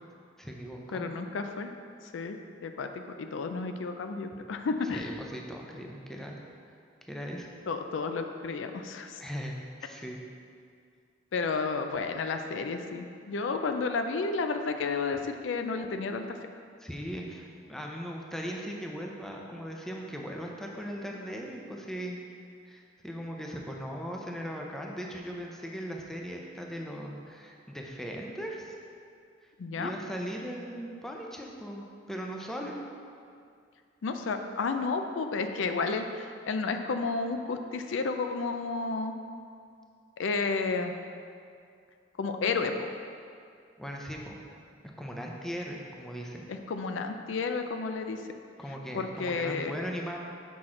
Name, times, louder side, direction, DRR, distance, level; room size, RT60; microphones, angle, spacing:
voice 1, 0.4-1.0 4.8-6.4 7.0-7.5 9.2-9.5 9.8-10.2 16.8-22.2 22.7-28.7 29.7-32.8 43.8-44.4 45.0-46.5 48.6-50.2, equal, ahead, -1 dB, 0.6 m, -38 dB
voice 2, 0.9-1.7 2.1-2.9 3.2-5.1 7.7-9.2 11.3-16.4 29.6-29.9 34.0-39.1 40.2-41.0 42.2-42.9 46.5-48.2 48.9-49.7, left 4 dB, 85° left, 6 dB, 0.4 m, -31 dB
6.1 x 5.9 x 3.7 m, 2.3 s
head